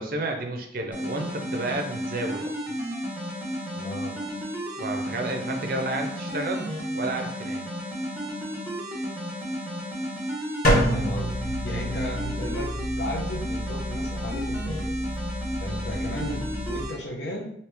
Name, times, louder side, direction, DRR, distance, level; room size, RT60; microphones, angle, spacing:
voice 1, 0.0-2.5 4.8-7.7 16.3-16.4, right 2 dB, 50° right, 3 dB, 0.5 m, -31 dB
sound 1, 0.9-16.9, equal, 10° right, 1.0 m, -33 dB
voice 2, 3.7-4.2 10.6-15.0 15.6-17.5, left 1 dB, 80° left, 1 dB, 0.7 m, -35 dB
sound 2, 10.6-16.8, equal, 50° left, 0.9 m, -29 dB
3.1 x 2.8 x 3.3 m, 0.69 s
head